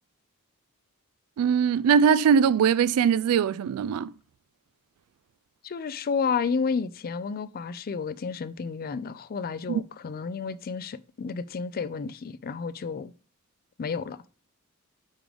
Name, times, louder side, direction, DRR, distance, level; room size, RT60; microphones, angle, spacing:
voice 1, 1.4-4.1 9.7-9.8, right 7 dB, 70° right, 0.3 m, -21 dB
voice 2, 5.6-13.1 13.8-14.2, left 5 dB, 40° left, 0.4 m, -31 dB
9.7 x 3.7 x 3.4 m
head